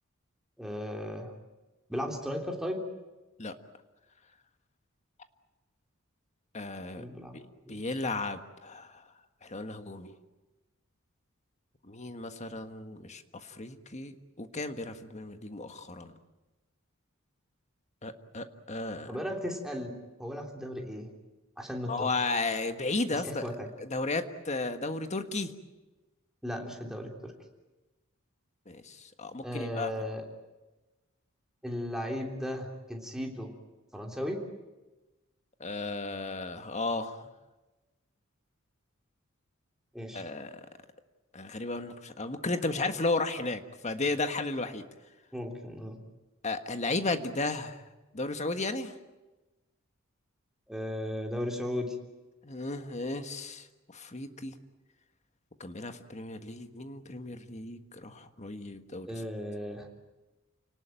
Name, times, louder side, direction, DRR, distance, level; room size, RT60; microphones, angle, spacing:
voice 1, 0.6-1.3 1.9-2.8 7.0-7.4 7.7-7.8 19.1-21.1 21.6-22.1 23.1-23.7 26.4-27.3 29.4-30.2 31.6-33.5 33.9-34.4 39.9-40.3 45.3-46.0 50.7-52.0 59.1-59.9, equal, ahead, 1 dB, 3.3 m, -36 dB
voice 2, 6.5-7.0 7.3-7.4 7.7-9.0 9.4-10.1 11.9-16.1 18.0-19.1 21.9-23.5 23.8-25.5 28.7-29.9 35.6-37.3 40.1-40.6 41.3-44.9 46.4-47.8 48.1-48.9 52.4-53.7 53.9-54.5 55.6-59.1, left 3 dB, 35° left, 8 dB, 1.5 m, -34 dB
29.0 x 19.0 x 9.0 m, 1.1 s
head